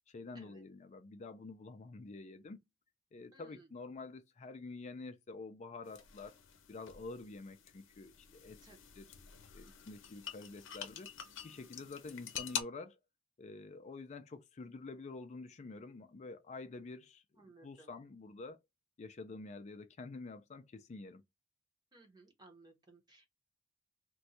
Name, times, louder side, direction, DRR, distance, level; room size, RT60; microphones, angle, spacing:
voice 1, 0.1-2.6 3.1-6.4 6.7-8.6 9.0-9.1 9.5-11.1 11.4-13.0 13.4-18.6 19.0-21.2, left 3 dB, 35° left, 0.4 m, -48 dB
voice 2, 3.3-3.7 8.6-8.8 17.4-17.9 21.9-23.3, right 2 dB, 20° right, 0.9 m, -60 dB
sound 1, 5.8-12.6, left 8 dB, 65° left, 0.7 m, -47 dB
2.6 x 2.3 x 4.1 m
head